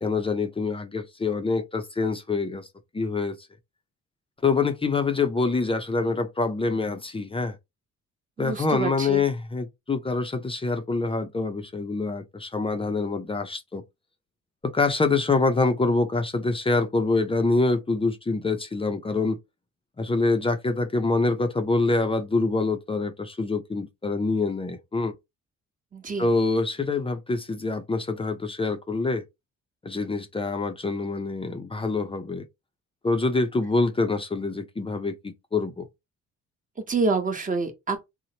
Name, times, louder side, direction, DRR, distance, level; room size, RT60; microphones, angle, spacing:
voice 1, 0.0-2.7 2.9-3.4 4.4-7.5 8.4-13.8 14.6-19.4 20.0-25.1 26.2-29.2 29.8-32.5 33.0-35.9, left 3 dB, 20° left, 0.5 m, -25 dB
voice 2, 8.4-9.2 25.9-26.3 36.9-38.0, right 3 dB, 25° right, 1.0 m, -27 dB
2.9 x 2.0 x 2.8 m
cardioid pair, 90°, 30 cm